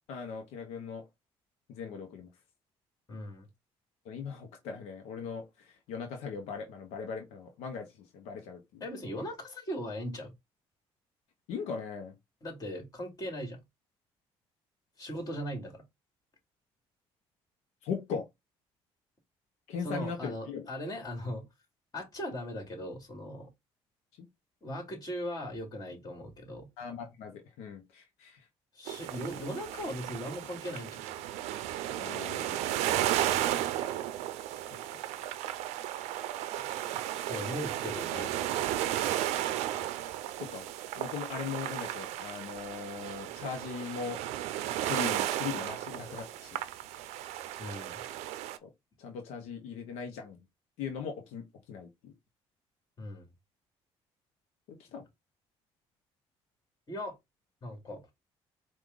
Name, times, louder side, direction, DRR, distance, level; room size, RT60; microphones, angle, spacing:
voice 1, 0.1-1.0 1.7-2.3 4.0-8.8 11.5-12.1 17.8-18.3 19.7-20.6 24.1-24.3 26.8-28.5 29.3-29.4 31.9-32.7 34.9-35.0 40.4-40.7 40.9-44.2 44.8-46.6 48.6-48.7 49.0-50.4 50.8-52.1 54.7-55.0, left 6 dB, 85° left, 0.9 m, -39 dB
voice 2, 3.1-3.5 8.8-10.3 12.4-13.6 15.0-15.8 19.8-21.4 21.9-23.5 24.6-26.7 28.7-31.0 37.3-38.3 47.6-48.0 53.0-53.3 56.9-57.2 57.6-58.0, equal, 35° left, 2.5 m, -38 dB
sound 1, 28.9-48.6, right 13 dB, 90° right, 0.5 m, -34 dB
4.6 x 2.5 x 3.9 m
cardioid pair, 90°, 11 cm